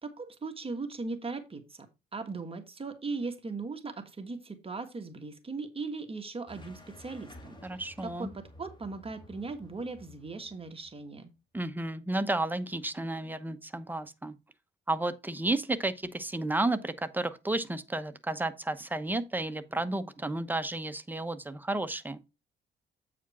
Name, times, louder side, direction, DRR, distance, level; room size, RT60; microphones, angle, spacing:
voice 1, 0.0-1.9 2.1-11.3, right 3 dB, 30° right, 1.6 m, -39 dB
sound 1, 6.5-11.2, left 1 dB, 25° left, 2.1 m, -53 dB
voice 2, 7.6-8.3 11.5-14.3 14.9-22.2, right 2 dB, 10° right, 0.9 m, -32 dB
8.4 x 5.1 x 4.2 m
cardioid pair, 90°, 20 cm